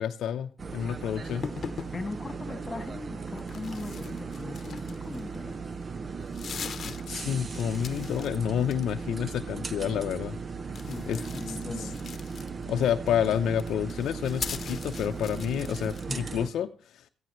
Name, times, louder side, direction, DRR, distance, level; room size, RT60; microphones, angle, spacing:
voice 1, 0.0-1.4 6.8-10.4 11.1-11.2 11.5-11.6 12.7-17.1, left 9 dB, 75° left, 0.7 m, -29 dB
sound 1, 0.6-16.5, right 5 dB, 35° right, 0.8 m, -37 dB
sound 2, 1.3-2.0 3.4-5.4 5.8-5.9 6.2-8.4 8.6-9.1 10.7-12.8 13.5-16.1, left 6 dB, 50° left, 1.0 m, -40 dB
voice 2, 1.9-5.6 10.7-12.1 16.1-16.4, left 3 dB, 25° left, 2.1 m, -39 dB
16.5 x 14.0 x 3.1 m
cardioid pair, 90°, 0 cm